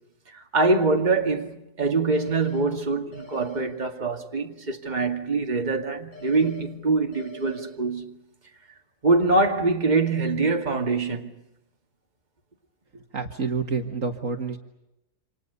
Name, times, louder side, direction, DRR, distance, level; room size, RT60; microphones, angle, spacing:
voice 1, 0.3-8.2 9.0-11.3, right 3 dB, 25° right, 2.2 m, -24 dB
sound 1, 2.1-2.6 3.1-3.6 6.1-6.6 7.1-7.6, left 3 dB, 70° left, 6.9 m, -44 dB
voice 2, 12.9-14.6, right 5 dB, 55° right, 2.1 m, -29 dB
28.5 x 27.0 x 6.9 m
omnidirectional pair, 1.7 m